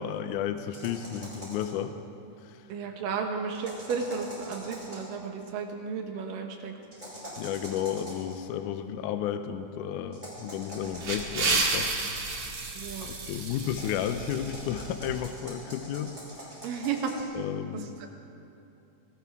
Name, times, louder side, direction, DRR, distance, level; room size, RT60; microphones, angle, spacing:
voice 1, 0.0-1.9 2.4-2.6 7.4-12.5 13.0-16.1 16.4-16.5 17.3-17.9, left 9 dB, 80° left, 8 dB, 2.1 m, -33 dB
sound 1, 0.7-1.8 3.5-5.1 6.9-8.3 10.1-11.7 13.7-17.3, equal, 15° right, 4.9 m, -44 dB
voice 2, 2.7-6.7 12.7-13.1 16.6-17.1 17.7-18.1, right 6 dB, 90° right, 3 dB, 2.9 m, -33 dB
sound 2, 10.7-15.2, right 3 dB, 50° right, 2.3 m, -32 dB
20.0 x 18.5 x 3.6 m, 2.8 s
omnidirectional pair, 3.8 m